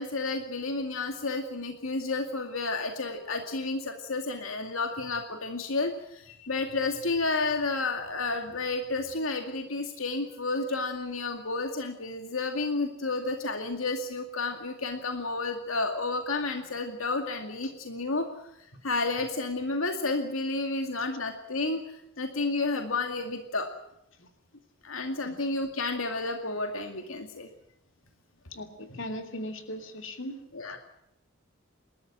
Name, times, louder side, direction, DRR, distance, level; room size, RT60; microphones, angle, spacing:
voice 1, 0.0-18.3 18.8-23.7 24.8-27.5 30.5-30.8, left 3 dB, 85° left, 5 dB, 2.3 m, -31 dB
voice 2, 28.5-30.4, left 1 dB, 70° left, 6 dB, 2.9 m, -38 dB
29.0 x 13.0 x 8.9 m, 0.81 s
head